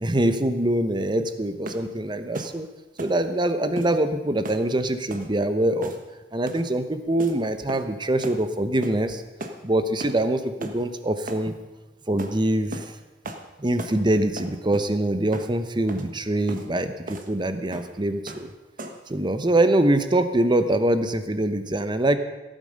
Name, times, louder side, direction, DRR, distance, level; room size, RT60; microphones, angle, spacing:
voice 1, 0.0-2.7 3.0-5.9 6.3-9.2 9.6-11.5 12.1-12.9 13.6-18.5 19.1-22.2, right 1 dB, 25° right, 10 dB, 0.9 m, -24 dB
sound 1, 1.6-1.9 2.3-2.6 3.0-3.2 3.8-4.0 4.4-4.7 5.1-5.3 5.8-6.1 6.5-6.7 7.2-7.4 7.7-7.9 8.2-8.4 8.8-9.0 9.4-9.6 10.0-10.2 10.6-10.8 11.3-11.5 12.2-12.3 12.7-12.9 13.2-13.4 13.8-14.0 14.4-14.9 15.3-15.5 15.9-16.1 16.5-16.7 17.1-17.3 17.7-17.9 18.3-18.5 18.8-19.1, right 1 dB, 45° right, 1.3 m, -36 dB
16.0 x 9.1 x 6.5 m, 1.1 s
head